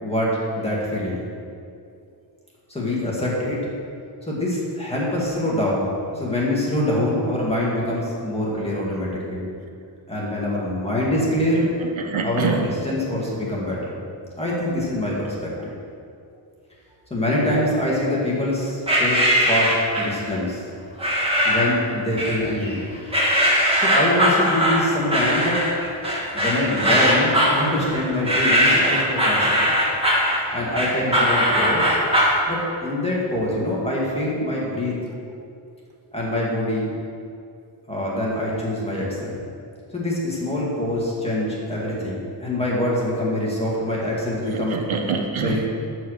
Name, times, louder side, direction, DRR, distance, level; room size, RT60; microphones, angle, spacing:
voice 1, 0.0-1.3 2.7-3.7 4.3-9.5 10.1-11.7 12.2-13.8 14.4-15.7 17.1-20.6 21.5-22.8 23.8-25.6 26.3-29.7 30.5-32.0 32.5-35.0 36.1-36.9 37.9-39.4 39.9-44.8 45.4-45.7, left 1 dB, 10° left, -5 dB, 2.2 m, -24 dB
voice 2, 11.5-12.7 15.6-15.7 44.4-45.6, right 5 dB, 75° right, 3 dB, 1.1 m, -26 dB
sound 1, 18.9-20.2 21.0-21.8 22.2-22.8 23.1-32.4, equal, 10° right, 1.7 m, -20 dB
13.0 x 4.7 x 6.6 m, 2.4 s
wide cardioid pair, 170°, 47 cm